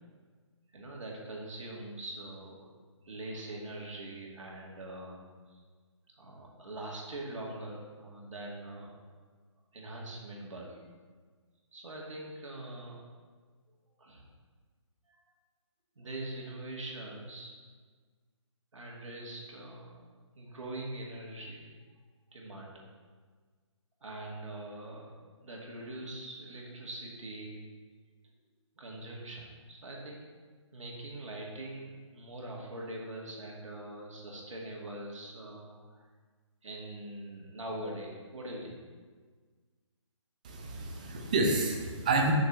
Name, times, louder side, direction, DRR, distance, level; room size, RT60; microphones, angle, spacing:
voice 1, 0.7-2.7 3.0-5.6 6.2-8.9 9.7-10.8 11.7-13.0 14.0-14.3 15.1-15.2 16.0-17.5 18.7-19.9 20.4-21.7 22.3-22.8 24.0-27.6 28.7-30.2 30.7-36.1 36.6-38.8, right 1 dB, 75° right, -2 dB, 2.4 m, -43 dB
voice 2, 40.4-42.3, right 3 dB, 15° right, 2 dB, 0.6 m, -29 dB
6.5 x 5.7 x 6.2 m, 1.5 s
hypercardioid pair, 175°, 16 cm